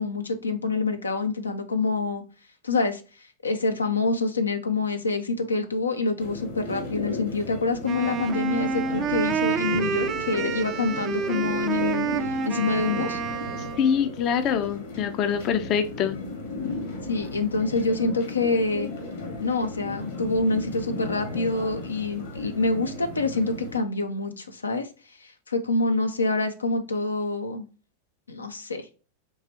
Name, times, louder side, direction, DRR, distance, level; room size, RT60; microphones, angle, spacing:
voice 1, 0.0-2.2 2.6-3.0 3.4-13.2 17.1-18.9 19.4-24.9 25.2-27.7 28.3-28.9, left 3 dB, 75° left, 6 dB, 0.6 m, -26 dB
sound 1, 6.2-23.8, left 2 dB, 60° left, 1.5 m, -35 dB
Wind instrument woodwind instrument, 7.8-14.0, right 6 dB, 30° right, 0.4 m, -28 dB
voice 2, 13.8-16.2, left 7 dB, 35° left, 9 dB, 0.6 m, -24 dB
4.7 x 3.2 x 2.7 m, 0.34 s
figure-of-eight pair, 90°, 0 cm